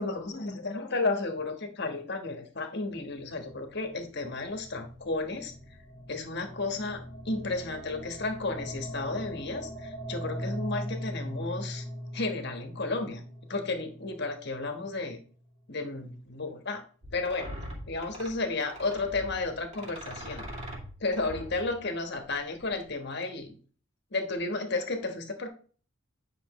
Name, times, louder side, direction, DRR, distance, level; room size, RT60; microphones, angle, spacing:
voice 1, 0.0-5.5 6.1-7.0 7.2-11.8 12.1-13.2 13.5-15.2 15.7-16.8 17.1-17.5 17.9-20.4 21.0-23.5 24.1-25.5, left 3 dB, 55° left, 5 dB, 1.3 m, -33 dB
sound 1, 2.9-15.1, equal, 10° left, 1.4 m, -41 dB
sound 2, 17.0-22.9, equal, 35° right, 2.4 m, -42 dB
9.9 x 5.8 x 3.1 m, 0.42 s
head